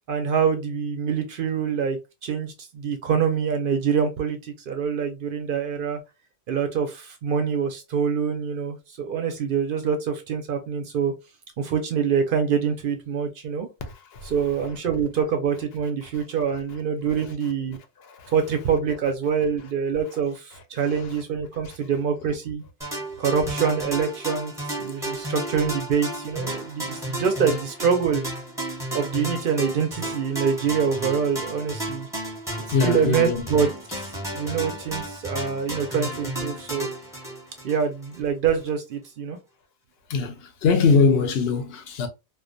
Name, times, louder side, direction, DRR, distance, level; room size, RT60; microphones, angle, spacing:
voice 1, 0.1-6.0 6.5-11.1 11.6-13.7 14.2-17.8 18.3-22.6 23.2-24.5 24.8-28.2 28.9-32.1 32.8-33.7 34.0-36.9 37.6-39.4, right 6 dB, 60° right, 0.6 m, -25 dB
voice 2, 13.8-14.3 16.1-16.2 18.0-18.3 20.8-21.2 21.7-21.8 32.7-33.4 40.1-42.1, left 5 dB, 70° left, 0.8 m, -23 dB
sound 1, 22.8-38.2, right 1 dB, 5° right, 0.8 m, -33 dB
2.3 x 2.2 x 2.5 m
omnidirectional pair, 1.1 m